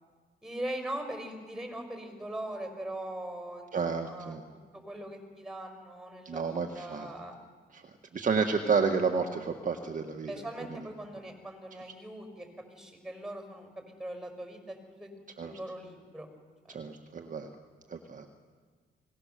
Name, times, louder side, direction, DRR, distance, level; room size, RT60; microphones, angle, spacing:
voice 1, 0.4-4.4 4.7-7.4 10.3-15.1 15.4-16.3 16.7-16.8, right 1 dB, 5° right, 5 dB, 5.6 m, -41 dB
voice 2, 3.7-4.4 6.2-7.1 7.7-7.8 8.1-10.4 15.4-15.5 16.7-17.5 17.9-18.3, right 5 dB, 40° right, 4 dB, 1.7 m, -30 dB
24.0 x 19.0 x 6.8 m, 1.5 s
cardioid pair, 90°, 20 cm